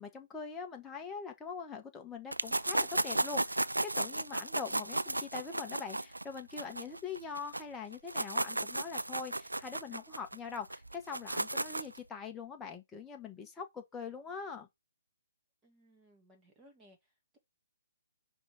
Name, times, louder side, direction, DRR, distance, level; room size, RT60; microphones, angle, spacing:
voice 1, 0.0-14.7, left 5 dB, 10° left, 1.4 m, -43 dB
sound 1, 2.3-7.6 7.9-12.0, right 2 dB, 80° right, 0.4 m, -34 dB
voice 2, 15.6-17.4, equal, 15° right, 2.4 m, -63 dB
5.3 x 4.1 x 6.0 m
figure-of-eight pair, 135°, 0 cm